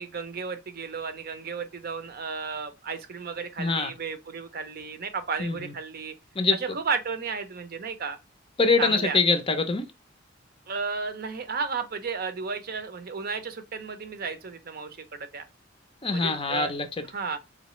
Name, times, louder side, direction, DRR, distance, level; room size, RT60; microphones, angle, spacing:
voice 1, 0.0-6.1 6.5-8.2 8.8-9.2 10.7-15.4 16.1-16.7 17.1-17.4, right 5 dB, 50° right, 0.6 m, -33 dB
voice 2, 3.6-3.9 5.4-5.7 6.3-6.6 8.6-9.9 16.0-17.0, left 4 dB, 25° left, 0.5 m, -24 dB
4.0 x 3.0 x 3.0 m
head